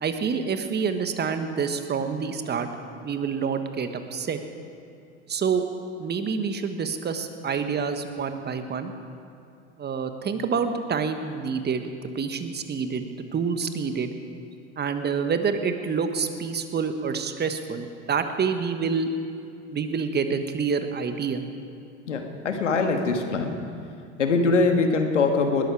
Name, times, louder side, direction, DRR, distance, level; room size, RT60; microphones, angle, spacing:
voice 1, 0.0-2.7 3.0-4.4 5.3-5.7 6.0-8.9 9.8-14.1 14.8-19.1 19.7-21.4, right 5 dB, 30° right, 8 dB, 1.4 m, -27 dB
voice 2, 22.1-23.5 24.2-25.7, left 3 dB, 90° left, 5 dB, 1.6 m, -22 dB
20.0 x 13.0 x 4.8 m, 2.5 s
hypercardioid pair, 75°, 35 cm